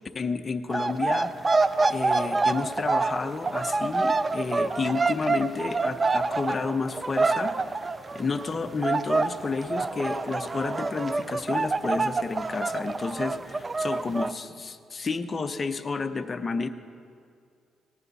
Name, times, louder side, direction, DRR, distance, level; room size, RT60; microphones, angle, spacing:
voice 1, 0.0-7.8 8.1-16.7, left 4 dB, 35° left, 8 dB, 0.7 m, -31 dB
sound 1, 0.7-8.6 8.8-14.3, right 3 dB, 25° right, 0.4 m, -26 dB
18.0 x 9.6 x 4.1 m, 2.3 s
cardioid pair, 90°, 0 cm